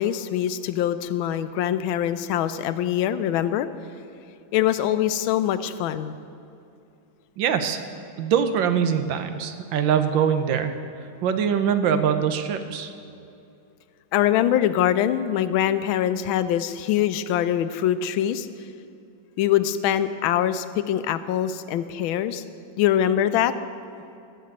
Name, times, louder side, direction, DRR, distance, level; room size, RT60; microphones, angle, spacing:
voice 1, 0.0-3.7 4.5-6.2 14.1-18.5 19.4-22.4 22.8-23.5, left 11 dB, 85° left, 12 dB, 1.4 m, -23 dB
voice 2, 7.4-7.8 8.2-10.8 11.2-12.9, right 8 dB, 75° right, 9 dB, 1.5 m, -23 dB
13.5 x 6.8 x 8.8 m, 2.6 s
omnidirectional pair, 2.2 m